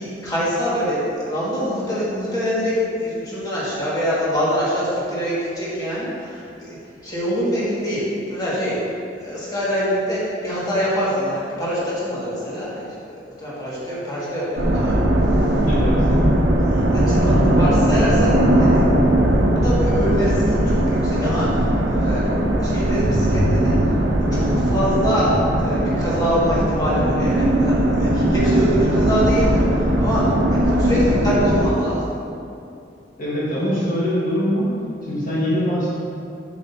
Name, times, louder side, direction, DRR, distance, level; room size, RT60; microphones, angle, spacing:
voice 1, 0.0-6.8 7.0-8.0 8.3-8.9 9.2-15.0 15.4-15.5 16.1-16.2 16.6-18.8 19.6-22.3 22.6-23.9 24.3-32.1, equal, 20° left, -9 dB, 1.8 m, -24 dB
sound 1, 14.6-31.7, right 1 dB, 75° right, 0.9 m, -18 dB
voice 2, 15.6-15.9 33.2-34.7 35.0-35.9, equal, 50° left, -8 dB, 1.5 m, -22 dB
8.3 x 7.6 x 2.7 m, 2.5 s
head